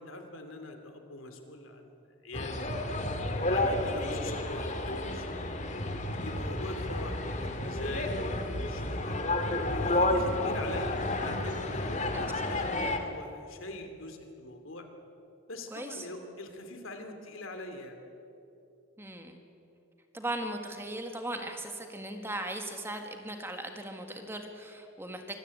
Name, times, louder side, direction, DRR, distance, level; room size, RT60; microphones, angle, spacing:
voice 1, 0.0-2.0 2.2-2.8 3.4-5.3 6.1-9.2 9.7-14.9 15.5-18.0, left 2 dB, 80° left, 6 dB, 2.8 m, -43 dB
sound 1, 2.3-13.0, left 1 dB, 35° left, 2.0 m, -31 dB
voice 2, 15.7-16.1 19.0-19.5 20.1-25.4, right 1 dB, 10° right, 5 dB, 1.6 m, -38 dB
24.5 x 16.5 x 8.5 m, 2.8 s
head